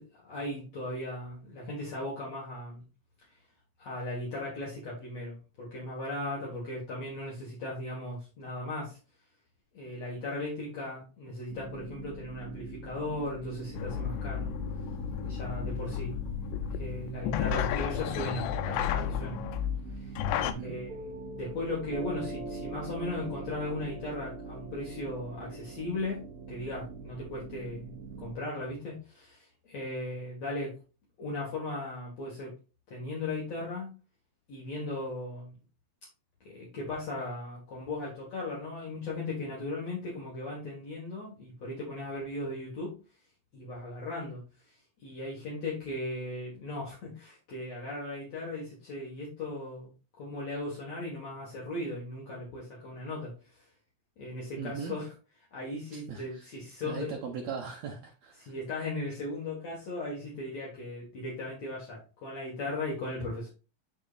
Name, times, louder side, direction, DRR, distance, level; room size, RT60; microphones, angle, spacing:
voice 1, 0.0-2.8 3.8-9.0 9.7-14.5 15.2-16.2 16.7-19.4 19.9-20.2 20.5-26.2 26.5-27.9 28.2-30.7 31.2-32.5 32.9-33.9 34.5-35.6 36.4-42.9 43.5-44.4 45.0-49.9 50.2-53.6 54.2-55.1 55.5-57.1 58.4-63.5, left 2 dB, 55° left, -4 dB, 2.7 m, -37 dB
sound 1, 11.5-28.3, right 4 dB, 90° right, 2.4 m, -44 dB
sound 2, 13.7-20.5, left 9 dB, 85° left, 2.2 m, -32 dB
voice 2, 20.4-20.7 54.6-55.0 55.9-56.5 56.8-58.5, right 6 dB, 70° right, 0 dB, 1.8 m, -39 dB
Piano, 20.9-27.9, right 2 dB, 35° right, 1.8 m, -43 dB
10.5 x 3.8 x 2.5 m, 0.33 s
omnidirectional pair, 3.8 m